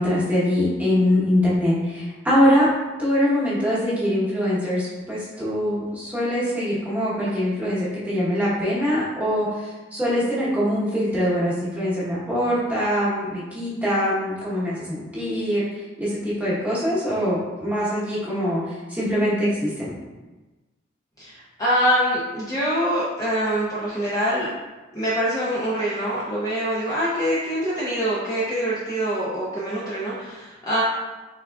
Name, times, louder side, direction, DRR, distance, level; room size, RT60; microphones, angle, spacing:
voice 1, 0.0-2.7 3.0-15.7 16.0-19.9, equal, 10° right, -9 dB, 1.0 m, -23 dB
voice 2, 21.2-24.5 24.9-30.8, equal, 20° left, -8 dB, 0.5 m, -24 dB
3.5 x 3.5 x 2.3 m, 1.2 s
head